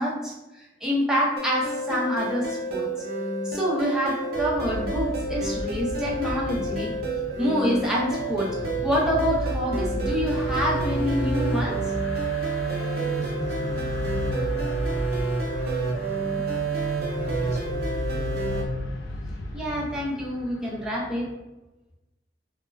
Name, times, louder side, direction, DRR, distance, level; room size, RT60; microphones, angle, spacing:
voice 1, 0.0-2.9 3.4-6.9 7.4-11.8 19.5-21.3, equal, 5° right, -5 dB, 0.5 m, -27 dB
sound 1, 1.4-18.6, right 3 dB, 55° right, 0.5 m, -29 dB
sound 2, 4.3-21.3, left 1 dB, 75° left, 0.3 m, -34 dB
voice 2, 12.6-16.7 17.0-18.7, right 1 dB, 40° left, -6 dB, 0.8 m, -43 dB
2.2 x 2.1 x 3.2 m, 1.0 s
head